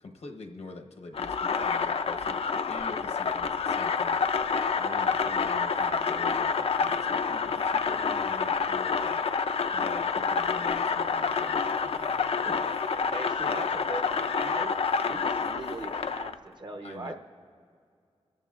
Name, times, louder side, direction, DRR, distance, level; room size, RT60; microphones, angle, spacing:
voice 1, 0.0-4.2 4.8-9.2 9.7-12.0 12.5-12.6 13.0-13.1 16.8-17.1, left 3 dB, 80° left, 3 dB, 1.0 m, -45 dB
sound 1, 1.1-16.3, left 5 dB, 65° left, 0.4 m, -28 dB
voice 2, 13.1-14.7 15.0-17.1, right 2 dB, 45° right, 5 dB, 0.8 m, -40 dB
26.0 x 13.5 x 2.4 m, 2.3 s
wide cardioid pair, 105°, 11 cm